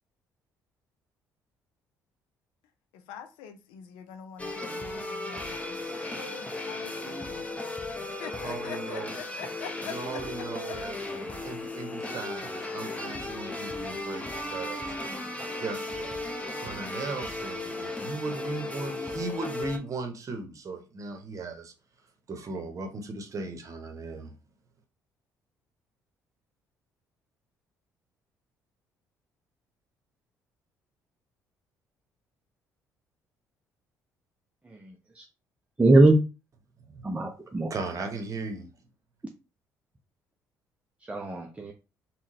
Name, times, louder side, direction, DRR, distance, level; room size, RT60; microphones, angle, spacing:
voice 1, 2.9-10.8, left 8 dB, 60° left, 0.5 m, -44 dB
sound 1, 4.4-19.8, left 2 dB, 15° left, 0.8 m, -36 dB
voice 2, 8.4-9.2 9.8-14.9 15.6-16.2 16.6-21.7 22.3-24.3 36.9-37.0 37.7-38.7, right 3 dB, 35° right, 0.9 m, -37 dB
voice 3, 34.6-35.3 35.8-36.2 37.0-37.7 41.0-41.7, right 2 dB, 15° right, 0.6 m, -22 dB
3.6 x 2.2 x 2.7 m
figure-of-eight pair, 50°, 9 cm